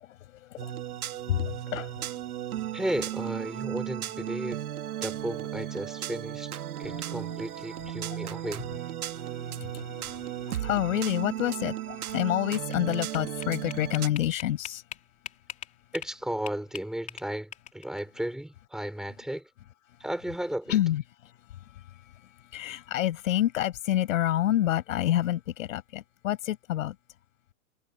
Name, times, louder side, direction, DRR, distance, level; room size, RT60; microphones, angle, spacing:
voice 1, 0.3-0.7 1.3-2.0 6.9-7.0 8.2-8.3 9.1-14.8 20.7-21.0 22.5-26.9, left 12 dB, 65° left, 6.7 m, -28 dB
sound 1, 0.6-14.1, right 11 dB, 85° right, 2.1 m, -35 dB
voice 2, 2.7-4.6 5.0-8.6 15.9-19.5 20.0-20.8, right 1 dB, ahead, 6.0 m, -34 dB
sound 2, 12.3-16.1 16.5-18.0, left 10 dB, 15° left, 4.1 m, -41 dB
supercardioid pair, 165°, 43 cm